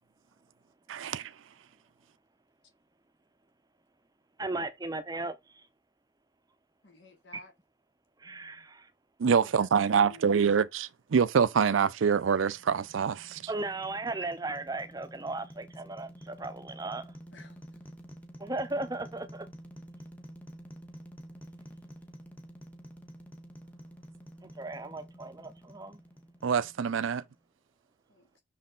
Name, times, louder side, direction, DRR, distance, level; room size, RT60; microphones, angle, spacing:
voice 1, 0.9-1.3 9.2-13.4 26.4-27.2, right 6 dB, 85° right, 0.5 m, -25 dB
voice 2, 4.4-5.7 8.2-8.9 13.5-17.1 18.4-19.5 24.4-26.0, right 2 dB, 20° right, 0.6 m, -36 dB
voice 3, 6.8-7.5 8.5-8.7 9.2-9.7 9.9-10.4 17.3-17.6 28.1-28.4, left 2 dB, 60° left, 1.6 m, -52 dB
sound 1, 12.2-27.4, equal, 10° left, 1.0 m, -49 dB
6.3 x 4.1 x 3.8 m
head